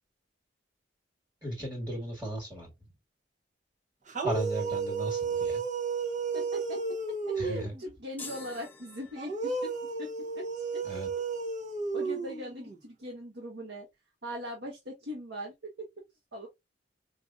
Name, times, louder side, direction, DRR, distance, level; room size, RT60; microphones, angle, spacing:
voice 1, 1.4-2.7 4.2-5.6 7.4-7.7 10.8-11.1, right 1 dB, 15° right, 1.6 m, -35 dB
sound 1, 4.1-7.8 9.2-12.8, right 4 dB, 45° right, 0.8 m, -33 dB
voice 2, 6.3-6.8 7.1-9.7 10.0-10.1 10.3-10.4 10.7-10.8 11.9-13.9 14.2-15.9 16.3-16.5, equal, 80° right, 1.2 m, -40 dB
sound 2, 8.2-9.7, left 4 dB, 10° left, 0.8 m, -47 dB
4.9 x 2.6 x 2.4 m
head